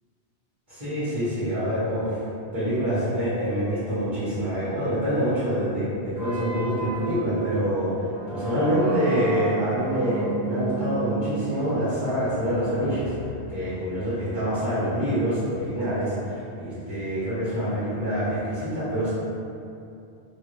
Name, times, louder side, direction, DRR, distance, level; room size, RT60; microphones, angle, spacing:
voice 1, 0.7-2.2 2.5-7.9 8.3-13.1 13.5-19.1, equal, 30° right, -14 dB, 1.0 m, -26 dB
sound 1, 6.1-13.9, right 4 dB, 90° right, 1.5 m, -35 dB
2.6 x 2.3 x 3.1 m, 2.6 s
omnidirectional pair, 1.1 m